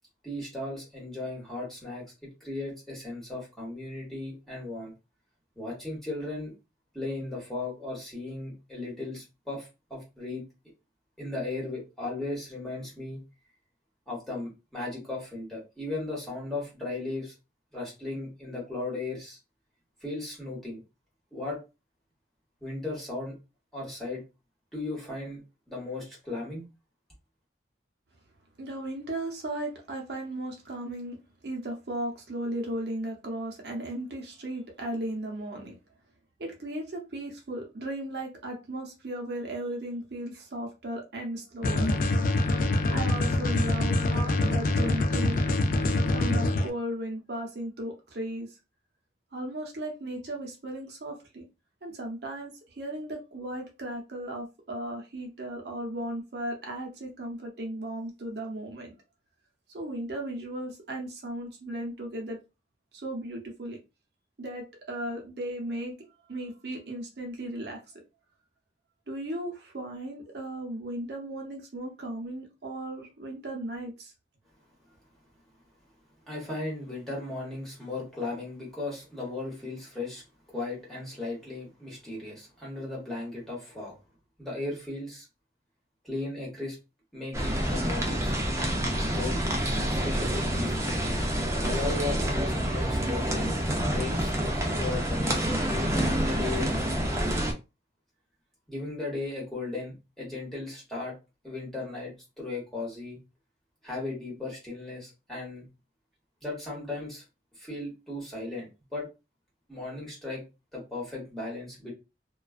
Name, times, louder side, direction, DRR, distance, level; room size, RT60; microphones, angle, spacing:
voice 1, 0.2-4.9 5.6-6.5 6.9-10.4 11.2-13.2 14.1-17.4 17.7-19.4 20.0-20.8 21.3-21.6 22.6-23.3 23.7-24.2 24.7-25.4 25.7-26.6 76.3-80.2 80.5-83.9 84.4-85.3 86.0-86.8 87.1-88.4 89.0-89.4 89.8-91.0 91.6-93.5 93.7-94.3 94.7-96.7 98.7-101.1 101.4-103.2 103.8-105.7 106.4-107.2 107.6-109.1 109.7-110.4 110.7-111.9, left 2 dB, ahead, 1.1 m, -36 dB
voice 2, 28.6-31.2 31.4-35.7 36.4-41.9 42.9-45.4 46.1-48.6 49.3-51.4 51.8-58.9 59.7-62.4 62.9-63.8 64.4-65.9 66.3-68.0 69.1-74.1, right 1 dB, 65° right, 0.7 m, -36 dB
sound 1, 41.6-46.7, left 2 dB, 50° left, 0.3 m, -25 dB
sound 2, 87.3-97.5, equal, 15° right, 0.4 m, -28 dB
2.4 x 2.3 x 2.3 m
head